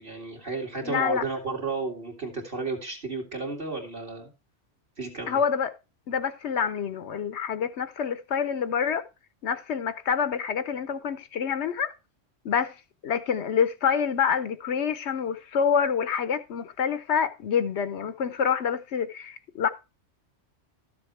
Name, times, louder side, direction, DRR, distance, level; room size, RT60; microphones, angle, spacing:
voice 1, 0.0-4.3 5.0-5.4, right 3 dB, 45° right, 2.5 m, -33 dB
voice 2, 0.8-1.2 5.3-5.7 6.1-9.0 9.4-11.9 12.4-12.8 13.0-19.7, left 7 dB, 70° left, 1.0 m, -27 dB
13.0 x 7.1 x 3.2 m
omnidirectional pair, 1.2 m